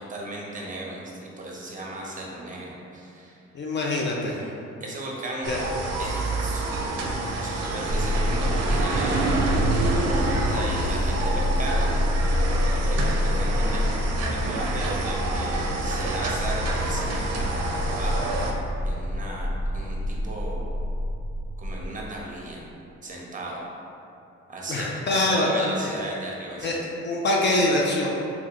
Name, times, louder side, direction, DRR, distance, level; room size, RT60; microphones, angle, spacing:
voice 1, 0.0-3.4 4.4-4.5 4.8-5.5 6.0-9.6 10.2-11.9 13.0-13.8 14.2-18.3 18.8-20.7 21.6-22.6 23.0-23.6 24.5-26.8, right 2 dB, 25° right, -3 dB, 0.7 m, -36 dB
voice 2, 3.5-4.4 5.5-5.6 24.7-25.5 25.8-25.9 26.6-28.1, left 2 dB, 35° left, -2 dB, 0.4 m, -24 dB
sound 1, 5.4-18.5, right 2 dB, 60° right, 0.5 m, -27 dB
sound 2, 7.9-21.9, left 1 dB, 75° left, 0.8 m, -28 dB
2.9 x 2.4 x 3.8 m, 2.8 s
cardioid pair, 90°, 30 cm